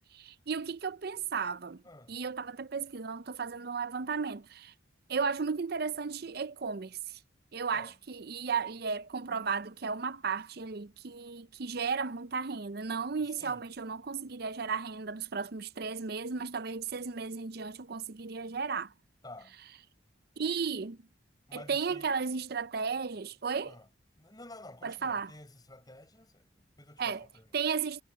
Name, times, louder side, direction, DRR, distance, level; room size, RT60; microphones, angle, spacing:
voice 1, 0.1-1.8 2.1-4.7 5.1-7.2 7.5-18.9 20.4-21.0 21.5-23.8 24.8-25.3 27.0-27.3 27.5-28.0, right 5 dB, 55° right, 0.6 m, -34 dB
voice 2, 1.8-2.2 7.7-8.0 13.4-13.6 19.2-19.6 21.5-22.1 23.6-23.9 24.2-27.6, left 1 dB, 20° left, 7.8 m, -51 dB
head